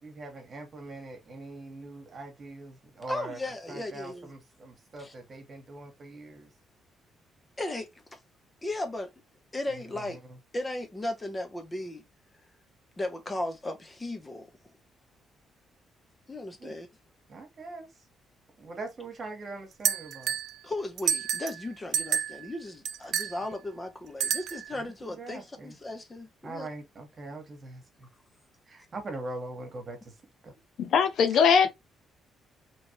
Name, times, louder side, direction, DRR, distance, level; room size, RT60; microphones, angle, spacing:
voice 1, 0.0-3.4 3.7-6.5 9.7-10.2 16.6-16.7 17.3-17.9 18.6-20.3 24.7-25.8 26.4-28.1 28.7-30.1 30.4-30.5 31.3-31.4, right 2 dB, 40° right, 1.4 m, -42 dB
voice 2, 3.1-4.3 5.0-5.1 7.6-7.9 8.6-9.1 9.5-10.2 10.5-12.0 13.0-14.5 16.3-16.9 20.6-26.7, left 1 dB, 20° left, 0.9 m, -36 dB
sound 1, 19.8-20.5 21.0-21.6 21.9-22.4 22.8-23.3 24.2-24.7, right 8 dB, 75° right, 0.4 m, -29 dB
voice 3, 30.8-31.7, left 6 dB, 70° left, 0.6 m, -21 dB
3.1 x 2.6 x 2.9 m
cardioid pair, 90°, 0 cm